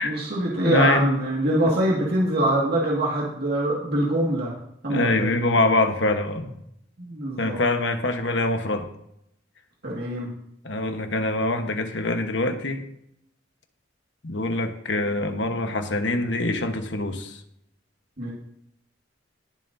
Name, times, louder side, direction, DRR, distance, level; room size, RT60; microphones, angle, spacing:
voice 1, 0.0-4.5 4.8-5.4 7.0-7.6 9.8-10.3 18.2-18.3, right 1 dB, 60° right, -4 dB, 2.0 m, -24 dB
voice 2, 0.6-1.1 1.6-1.7 4.9-6.6 7.4-8.9 10.6-12.8 14.2-17.4, left 2 dB, 75° left, 6 dB, 1.2 m, -24 dB
19.5 x 7.4 x 2.7 m, 0.76 s
head